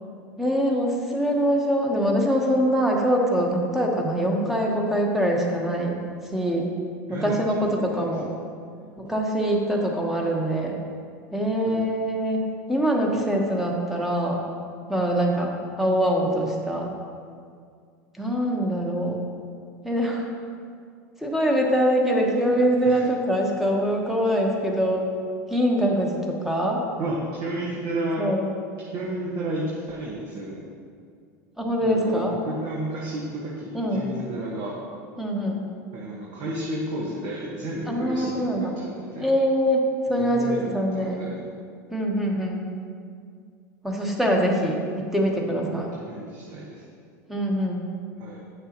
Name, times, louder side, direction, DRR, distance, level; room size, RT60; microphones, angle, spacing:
voice 1, 0.4-6.0 6.3-6.8 7.1-8.3 9.0-10.8 11.3-14.4 14.9-16.9 18.2-19.2 19.8-20.3 21.2-25.1 25.5-26.8 28.2-28.5 31.6-32.4 33.7-34.1 35.2-35.7 37.9-38.8 39.2-39.8 40.1-41.2 41.9-42.6 43.8-45.9 47.3-47.8, equal, 5° right, -1 dB, 1.1 m, -24 dB
voice 2, 7.1-7.4 7.7-8.1 11.6-11.8 22.8-23.0 27.0-28.3 28.9-30.6 31.8-34.8 35.9-39.3 40.1-41.4 45.6-46.8 48.2-48.4, right 1 dB, 50° right, -5 dB, 1.4 m, -32 dB
9.3 x 6.7 x 3.0 m, 2.2 s
supercardioid pair, 110°, 9 cm